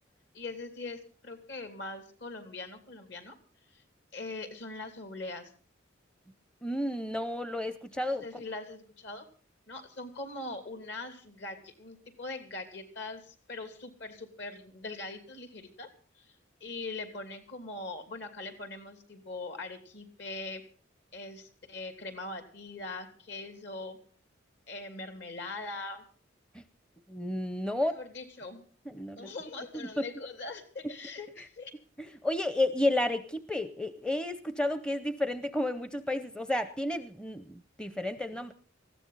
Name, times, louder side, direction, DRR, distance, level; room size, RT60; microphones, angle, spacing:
voice 1, 0.3-3.4 3.7-3.8 4.1-5.5 7.9-9.3 9.7-15.9 16.2-16.3 16.6-20.6 21.1-24.0 24.7-26.1 27.7-28.7 29.2-31.7, left 2 dB, 60° left, 8 dB, 2.8 m, -41 dB
voice 2, 6.6-8.2 27.1-28.0 28.9-29.3 30.0-30.1 32.2-37.4 37.8-38.5, left 1 dB, 5° left, 12 dB, 0.6 m, -31 dB
20.0 x 15.0 x 4.0 m, 0.41 s
head